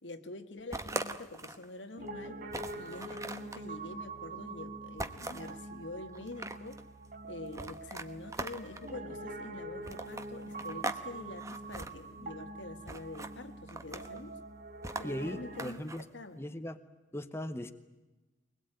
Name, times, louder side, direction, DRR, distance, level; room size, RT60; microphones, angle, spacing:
voice 1, 0.0-2.4 2.7-6.8 7.2-14.3 15.0-16.4, left 2 dB, 85° left, 7 dB, 1.7 m, -46 dB
sound 1, 0.7-1.7 2.1-2.2 2.5-3.6 5.0-5.5 6.1-6.8 7.5-8.9 9.8-11.0 11.3-11.9 12.9-13.3 13.7-14.2 14.8-16.0, right 2 dB, 15° right, 1.0 m, -40 dB
Piano, 2.0-15.7, right 2 dB, 45° right, 1.8 m, -45 dB
voice 2, 15.0-16.1 16.3-16.8 17.1-17.7, equal, 15° left, 8 dB, 0.9 m, -38 dB
23.0 x 20.5 x 9.1 m, 1.1 s
head